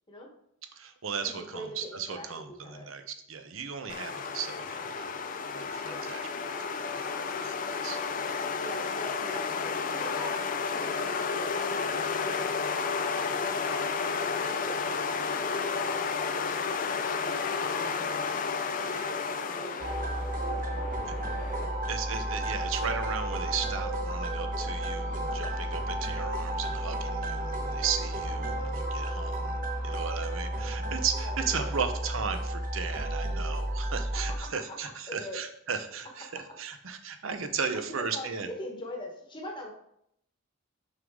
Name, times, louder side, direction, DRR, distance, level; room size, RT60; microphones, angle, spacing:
voice 1, 0.7-5.2 5.4-6.2 6.6-8.0 18.7-19.1 21.9-29.6 29.8-36.3 36.6-38.5, right 6 dB, 70° right, 8 dB, 0.7 m, -36 dB
voice 2, 1.2-2.3 2.6-2.9 5.9-6.1 8.6-13.6 14.2-14.7 15.3-16.0 16.6-18.3 18.6-21.8 25.4-25.6 30.1-30.3 31.2-32.0 35.1-35.4 38.0-39.7, left 1 dB, 20° left, 1 dB, 1.1 m, -43 dB
sound 1, 3.9-21.7, left 5 dB, 40° left, 0.4 m, -32 dB
sound 2, 19.8-34.4, right 1 dB, 40° right, 1.2 m, -32 dB
6.3 x 5.4 x 3.6 m, 0.73 s
head